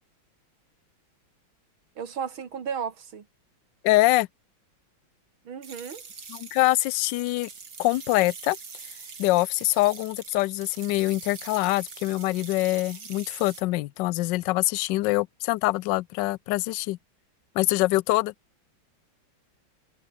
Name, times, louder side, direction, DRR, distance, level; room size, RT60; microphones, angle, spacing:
voice 1, 2.0-3.2 5.4-6.0, right 7 dB, 90° right, 2.9 m, -34 dB
voice 2, 3.8-4.3 6.3-7.5 7.8-8.6 9.2-17.0 17.5-18.3, left 19 dB, 75° left, 1.1 m, -24 dB
sound 1, 5.6-13.6, right 5 dB, 65° right, 3.6 m, -43 dB
omnidirectional pair, 2.2 m